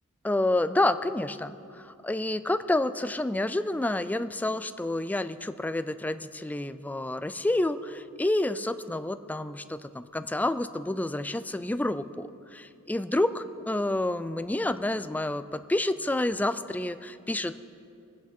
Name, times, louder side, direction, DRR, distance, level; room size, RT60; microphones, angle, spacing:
voice 1, 0.2-17.6, left 1 dB, 5° left, 12 dB, 0.3 m, -29 dB
21.5 x 8.3 x 4.4 m, 2.6 s
head